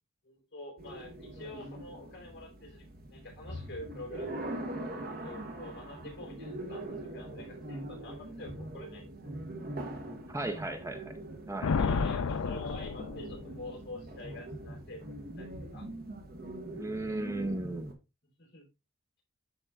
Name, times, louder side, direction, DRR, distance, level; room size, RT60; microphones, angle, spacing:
voice 1, 0.2-4.7 5.2-9.1 11.6-15.9 18.4-18.7, left 2 dB, 50° left, -1 dB, 4.1 m, -47 dB
sound 1, 0.8-17.9, right 1 dB, 45° right, 1.3 m, -42 dB
voice 2, 10.3-11.1 11.5-11.7 16.8-17.9, right 2 dB, 15° right, 6 dB, 0.6 m, -35 dB
Thunder, 11.6-13.8, left 5 dB, 75° left, 0.5 m, -31 dB
12.5 x 4.3 x 2.4 m, 0.26 s
head